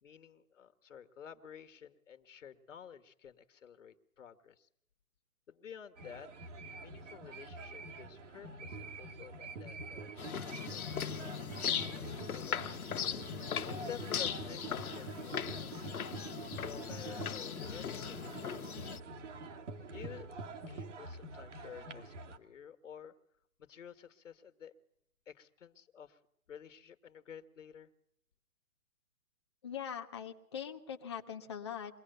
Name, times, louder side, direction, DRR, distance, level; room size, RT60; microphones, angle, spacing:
voice 1, 0.0-4.7 5.5-6.3 6.8-11.1 11.8-12.8 13.6-16.0 16.6-18.9 19.9-20.3 20.7-23.2 23.6-24.7 25.3-26.2 26.5-27.9, left 8 dB, 60° left, 10 dB, 1.7 m, -52 dB
sound 1, 6.0-22.4, right 3 dB, 55° right, 2.2 m, -46 dB
sound 2, 10.2-19.0, left 8 dB, 85° left, 1.3 m, -39 dB
voice 2, 29.6-32.0, left 8 dB, 20° left, 2 dB, 0.9 m, -42 dB
23.5 x 17.5 x 6.8 m, 0.76 s
hypercardioid pair, 180°, 42 cm